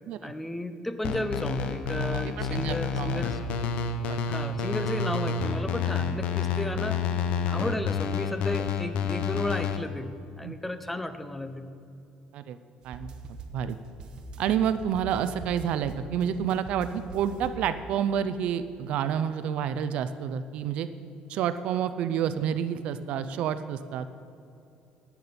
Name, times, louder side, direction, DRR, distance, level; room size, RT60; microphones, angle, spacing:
voice 1, 0.2-3.4 4.3-7.1 7.5-11.7, left 1 dB, 5° left, 10 dB, 0.5 m, -33 dB
sound 1, 1.0-9.8, left 5 dB, 60° left, 0.7 m, -29 dB
voice 2, 2.1-3.2 4.0-4.2 10.4-10.5 12.3-12.6 12.8-13.1 13.5-13.8 14.4-20.9 21.3-24.1, right 9 dB, 55° right, 12 dB, 0.4 m, -29 dB
sound 2, 12.8-18.1, right 2 dB, 35° right, 0.8 m, -43 dB
10.5 x 5.9 x 8.6 m, 2.6 s
cardioid pair, 180°, 2 cm